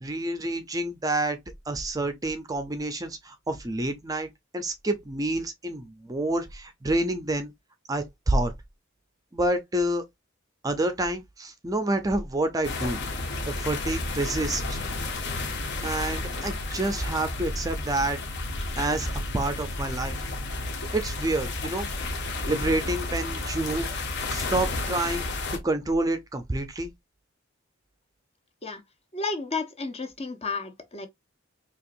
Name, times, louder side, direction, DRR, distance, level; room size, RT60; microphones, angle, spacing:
voice 1, 0.0-1.4 1.7-7.5 7.9-8.5 9.3-10.0 10.6-13.0 13.5-14.8 15.6-18.2 18.8-20.2 20.9-21.9 22.5-23.9 24.3-25.3 25.6-26.9, right 2 dB, 20° right, 0.5 m, -28 dB
sound 1, 12.6-25.6, left 2 dB, 60° left, 1.0 m, -32 dB
voice 2, 29.1-31.1, left 4 dB, 30° left, 0.7 m, -32 dB
4.4 x 2.9 x 2.5 m
head